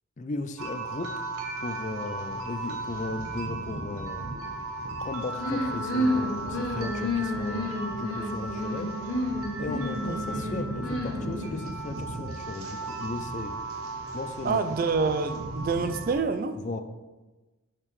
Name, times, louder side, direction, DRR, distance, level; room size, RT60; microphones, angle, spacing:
voice 1, 0.2-1.2 1.6-4.2 5.0-8.9 9.6-13.5 14.1-14.7 16.6-16.8, left 3 dB, 35° left, 8 dB, 0.4 m, -36 dB
sound 1, 0.6-16.1, right 2 dB, 75° right, 0.9 m, -36 dB
sound 2, 5.4-11.8, left 1 dB, 70° left, 1.5 m, -31 dB
voice 2, 14.4-16.6, right 4 dB, 40° right, 10 dB, 0.3 m, -27 dB
6.7 x 5.8 x 3.2 m, 1.2 s
head